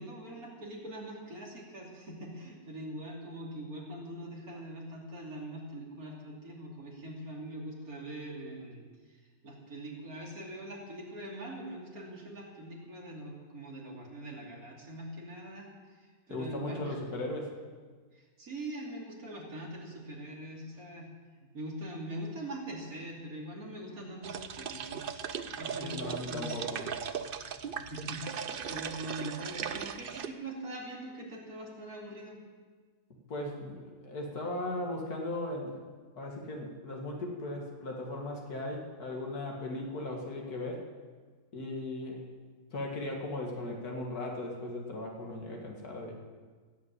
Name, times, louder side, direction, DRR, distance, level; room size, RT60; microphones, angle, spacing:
voice 1, 0.0-8.8 9.4-15.7 16.3-17.0 18.1-21.1 21.5-26.6 27.9-32.4, right 1 dB, 70° right, -2 dB, 3.4 m, -42 dB
voice 2, 16.3-17.6 25.6-26.9 33.3-35.8 36.2-40.9 41.5-42.3 42.7-46.1, left 1 dB, 85° left, 0 dB, 2.6 m, -37 dB
sound 1, 24.2-30.3, right 7 dB, 55° right, 0.6 m, -38 dB
16.0 x 8.6 x 8.3 m, 1.5 s
omnidirectional pair, 1.6 m